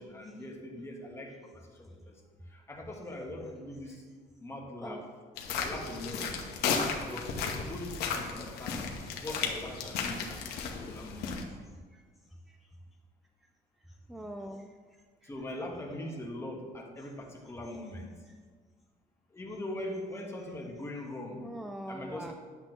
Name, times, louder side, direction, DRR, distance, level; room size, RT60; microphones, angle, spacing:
voice 1, 0.0-4.0 4.4-5.1 5.6-6.4 7.1-8.9 9.2-11.4 15.2-18.1 19.3-21.5 21.9-22.3, left 1 dB, 15° left, 0 dB, 1.3 m, -41 dB
sound 1, 5.4-11.4, left 5 dB, 90° left, 1.1 m, -34 dB
voice 2, 14.1-14.7 15.2-15.3 21.4-22.3, right 1 dB, ahead, 5 dB, 0.3 m, -42 dB
10.0 x 7.6 x 3.0 m, 1.5 s
cardioid pair, 145°, 16 cm